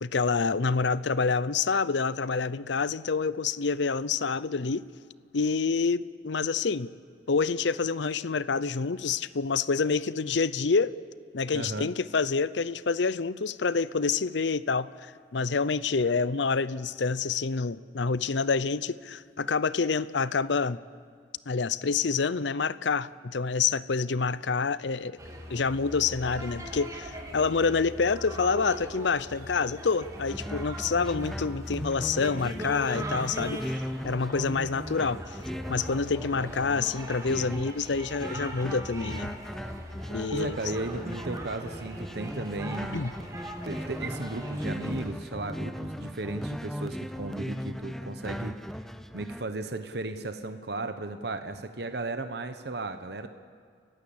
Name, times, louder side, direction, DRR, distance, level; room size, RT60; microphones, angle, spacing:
voice 1, 0.0-4.9 5.3-6.9 7.3-10.9 11.3-14.9 15.3-20.8 21.5-25.2 25.5-33.7 34.0-35.4 35.7-39.3 40.1-40.6 42.9-43.1, left 4 dB, 70° left, 17 dB, 0.6 m, -27 dB
voice 2, 11.5-11.9 40.3-43.1 43.6-48.6 49.1-53.3, right 2 dB, 60° right, 8 dB, 1.1 m, -35 dB
sound 1, 25.2-45.1, right 1 dB, 20° right, 2.8 m, -41 dB
sound 2, 30.2-49.4, equal, ahead, 0.6 m, -38 dB
29.0 x 15.5 x 8.8 m, 2.1 s
head